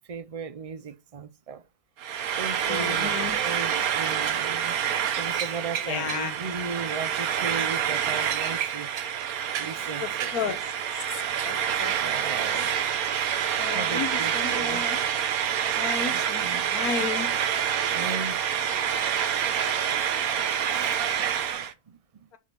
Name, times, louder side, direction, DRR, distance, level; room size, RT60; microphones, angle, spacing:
voice 1, 0.1-1.6 2.4-4.8 5.2-8.9 9.6-10.3 12.0-12.7 13.7-14.8 16.1-16.6 17.9-18.4 19.5-19.6 19.9-22.3, right 5 dB, 40° right, 0.5 m, -37 dB
Frying (food), 2.0-21.7, right 9 dB, 80° right, 1.3 m, -27 dB
voice 2, 2.7-3.4 5.8-6.3 10.0-10.6 10.9-12.1 12.3-12.5 13.6-15.0 15.7-17.3 22.3-22.4, left 6 dB, 90° left, 1.5 m, -33 dB
6.4 x 5.4 x 5.9 m
omnidirectional pair, 1.5 m